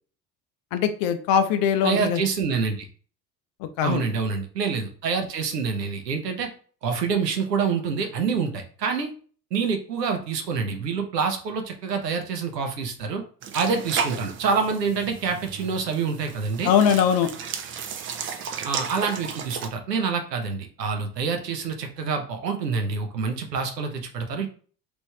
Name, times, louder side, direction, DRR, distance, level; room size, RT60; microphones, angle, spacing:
voice 1, 0.7-2.2 3.6-4.1 16.6-17.3, left 8 dB, 45° left, 9 dB, 0.5 m, -21 dB
voice 2, 1.8-2.9 3.8-6.5 6.8-9.1 9.5-13.2 13.5-16.7 18.6-24.5, right 5 dB, 85° right, 5 dB, 0.7 m, -26 dB
sound 1, 13.4-19.7, right 7 dB, 30° right, 0.4 m, -34 dB
3.1 x 2.5 x 3.2 m, 0.42 s
figure-of-eight pair, 60°, 48 cm